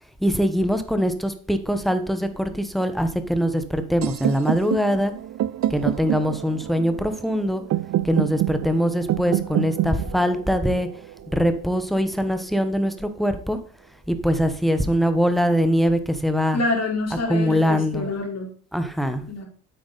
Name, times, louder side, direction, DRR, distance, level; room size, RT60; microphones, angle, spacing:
voice 1, 0.2-5.1 5.7-7.6 8.0-10.9 11.3-13.6 14.1-16.6 17.3-18.1 18.7-19.3, equal, ahead, 9 dB, 1.2 m, -22 dB
sound 1, 4.0-11.9, right 13 dB, 45° right, 0.5 m, -27 dB
voice 2, 16.5-18.5 19.3-19.5, left 3 dB, 40° left, 1 dB, 3.9 m, -26 dB
9.7 x 7.9 x 4.1 m, 0.41 s
cardioid pair, 105°, 39 cm